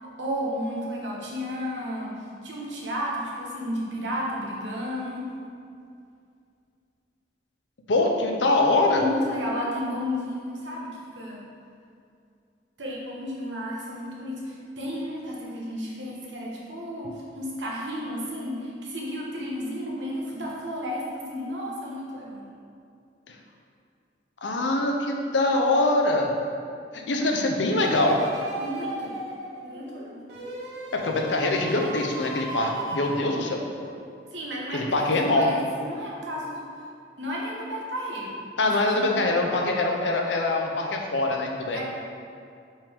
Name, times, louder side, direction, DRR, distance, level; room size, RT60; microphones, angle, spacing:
voice 1, 0.2-5.3 8.9-11.5 12.8-22.5 28.6-29.2 29.6-30.2 34.3-36.6 37.2-39.2 41.7-41.8, equal, 85° right, -4 dB, 1.3 m, -33 dB
voice 2, 7.9-9.0 24.4-26.3 26.9-28.2 30.9-33.6 34.7-35.6 38.6-41.8, left 2 dB, 85° left, 2 dB, 0.7 m, -23 dB
sound 1, 27.8-34.0 34.5-34.6, right 1 dB, 65° right, 1.2 m, -36 dB
5.4 x 5.0 x 3.6 m, 2.4 s
head